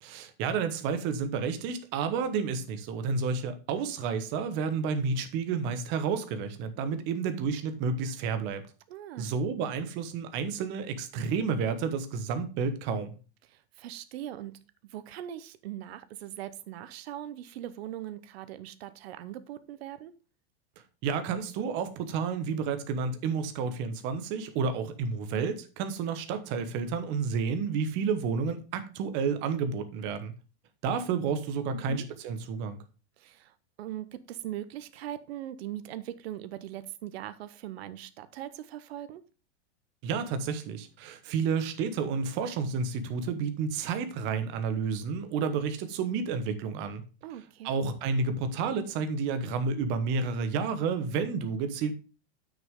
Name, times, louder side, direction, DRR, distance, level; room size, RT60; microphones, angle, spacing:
voice 1, 0.0-8.6 9.2-13.1 21.0-30.3 30.8-32.8 40.0-47.0 47.6-51.9, right 5 dB, 35° right, 1.2 m, -30 dB
voice 2, 8.9-9.3 13.5-14.5 14.9-20.1 31.7-32.0 33.2-39.2 47.2-47.7, right 12 dB, 65° right, 0.9 m, -40 dB
8.8 x 6.3 x 3.7 m
supercardioid pair, 160°, 34 cm